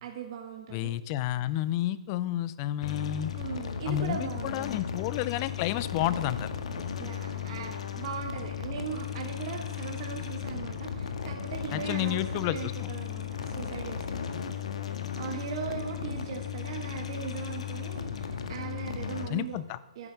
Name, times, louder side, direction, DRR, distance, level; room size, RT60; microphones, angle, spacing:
voice 1, 0.0-0.9 3.4-4.7 7.0-19.6 19.9-20.1, right 7 dB, 45° right, 2 dB, 1.4 m, -39 dB
voice 2, 0.7-3.3 3.9-6.5 11.7-12.9 19.3-19.8, left 13 dB, 30° left, 17 dB, 0.6 m, -30 dB
sound 1, 2.8-19.2, left 8 dB, 70° left, 1.7 m, -36 dB
11.0 x 10.0 x 6.8 m, 0.98 s
hypercardioid pair, 150°, 4 cm